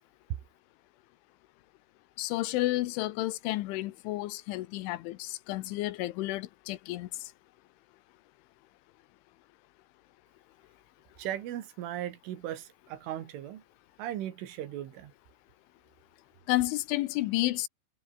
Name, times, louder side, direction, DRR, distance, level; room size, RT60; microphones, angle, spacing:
voice 1, 2.2-7.1 16.5-17.7, left 17 dB, 80° left, 3.2 m, -31 dB
voice 2, 11.2-13.6 14.0-15.1, right 12 dB, 75° right, 4.4 m, -37 dB
omnidirectional pair, 5.7 m